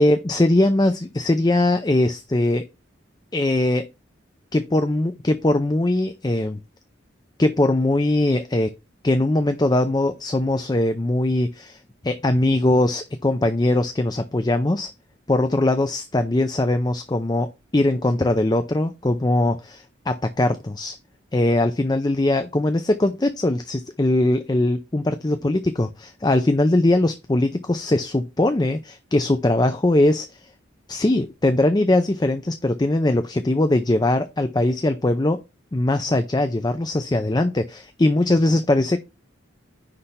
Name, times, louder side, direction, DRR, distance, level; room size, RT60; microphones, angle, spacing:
voice 1, 0.0-2.6 3.3-3.9 4.5-6.6 7.4-8.7 9.0-14.9 15.3-21.0 21.3-30.5 30.9-35.4 35.7-39.0, left 1 dB, 20° left, 0.5 m, -21 dB
9.9 x 3.3 x 5.6 m
head